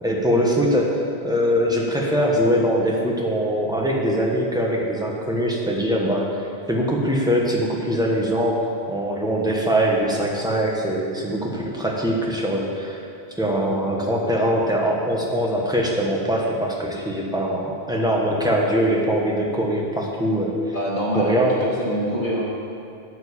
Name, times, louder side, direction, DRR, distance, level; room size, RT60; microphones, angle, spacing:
voice 1, 0.0-6.3 6.7-13.0 13.4-20.7 21.1-21.6, equal, 5° right, -2 dB, 1.3 m, -22 dB
voice 2, 20.7-22.4, equal, 35° left, -8 dB, 2.1 m, -25 dB
11.5 x 4.8 x 8.4 m, 2.6 s
omnidirectional pair, 1.1 m